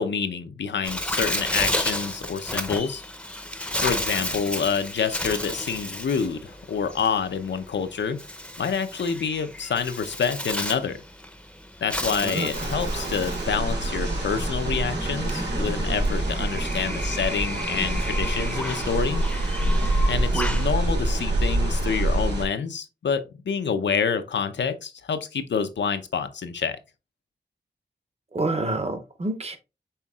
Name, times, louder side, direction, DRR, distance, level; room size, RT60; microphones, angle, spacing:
voice 1, 0.0-3.0 3.8-8.2 8.6-11.0 11.8-19.2 20.1-26.8, left 6 dB, 90° left, 0.6 m, -27 dB
Bird, 0.8-20.7, left 1 dB, 5° left, 0.6 m, -33 dB
sound 1, 12.5-22.4, right 1 dB, 75° right, 2.0 m, -26 dB
voice 2, 28.3-29.6, right 2 dB, 35° right, 0.8 m, -28 dB
5.6 x 3.7 x 2.3 m
wide cardioid pair, 85°, 18 cm